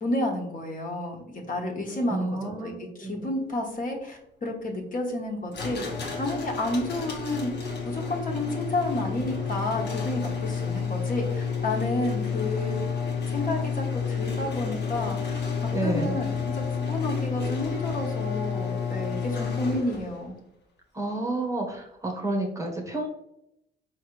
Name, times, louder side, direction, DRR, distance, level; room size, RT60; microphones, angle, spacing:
voice 1, 0.0-1.2 1.5-5.8 6.2-7.5 7.8-12.8 13.2-20.3, left 1 dB, 45° left, 0 dB, 1.2 m, -31 dB
voice 2, 2.1-3.3 15.7-16.2 20.9-23.1, right 2 dB, 15° right, 1 dB, 1.0 m, -30 dB
sound 1, 5.5-20.2, left 6 dB, 60° left, 1.1 m, -30 dB
4.6 x 3.2 x 3.2 m, 0.80 s
cardioid pair, 90°, 20 cm